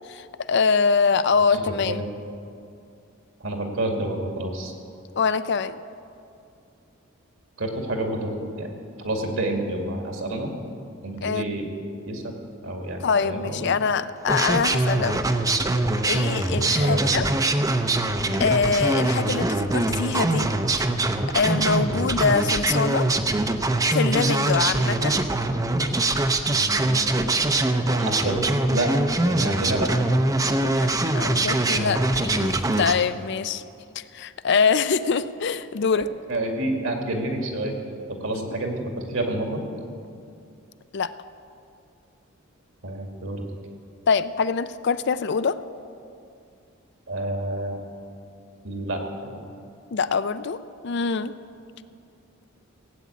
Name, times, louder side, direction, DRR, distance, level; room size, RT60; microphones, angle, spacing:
voice 1, 0.1-2.0 5.2-5.8 11.2-11.5 13.0-15.2 16.0-17.2 18.4-20.5 21.3-23.1 23.9-25.2 30.7-33.6 34.0-36.1 40.9-41.1 44.1-45.6 49.9-51.3, left 5 dB, 55° left, 13 dB, 0.5 m, -24 dB
voice 2, 3.4-4.7 7.6-8.7 9.0-10.5 11.0-11.7 12.1-12.2 12.6-13.7 16.8-17.3 26.5-27.1 27.4-27.6 27.9-28.9 29.2-29.9 31.2-31.4 31.7-31.8 35.9-36.0 36.3-37.8 38.1-38.8 39.1-39.6 42.8-43.5 47.1-47.8 48.6-49.0, right 1 dB, 70° right, 2 dB, 2.3 m, -29 dB
sound 1, 14.3-32.9, right 2 dB, 15° right, 0.6 m, -23 dB
17.5 x 8.5 x 8.4 m, 2.5 s
head